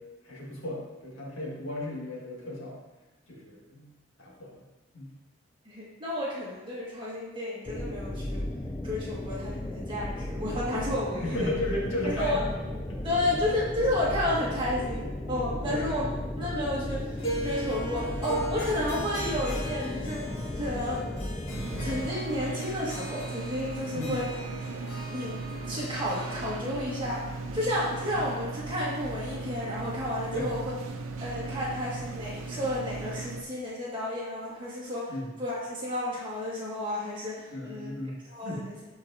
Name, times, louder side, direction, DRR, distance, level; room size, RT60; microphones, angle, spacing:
voice 1, 0.0-2.8 3.3-3.9 4.2-4.6 4.9-5.1 11.2-12.4 12.9-13.2 15.7-16.1 23.9-24.2 30.3-30.5 35.1-35.3 37.5-38.7, left 1 dB, 65° left, -4 dB, 2.0 m, -35 dB
voice 2, 5.7-8.5 8.8-11.5 12.0-12.4 13.0-16.1 16.4-21.1 21.4-24.3 25.1-25.4 25.7-27.2 27.5-30.6 31.2-35.1 35.4-37.9 38.3-38.8, left 1 dB, 25° right, -6 dB, 2.0 m, -32 dB
sound 1, 7.7-22.1, left 1 dB, 10° left, 0.3 m, -35 dB
Harp, 17.2-28.5, equal, 85° left, 1.8 m, -39 dB
sound 2, 21.5-33.4, right 3 dB, 80° right, 0.7 m, -37 dB
12.5 x 4.7 x 2.8 m, 1.2 s
head